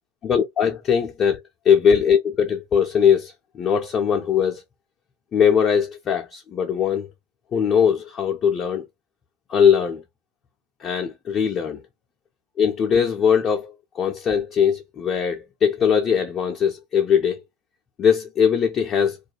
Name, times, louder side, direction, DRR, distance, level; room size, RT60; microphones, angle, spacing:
voice 1, 0.3-1.4 1.7-4.6 5.3-7.1 7.5-8.9 9.5-10.0 10.8-11.8 12.6-17.4 18.0-19.2, left 7 dB, 30° left, 0.4 m, -20 dB
2.3 x 2.2 x 2.9 m
figure-of-eight pair, 85°, 0 cm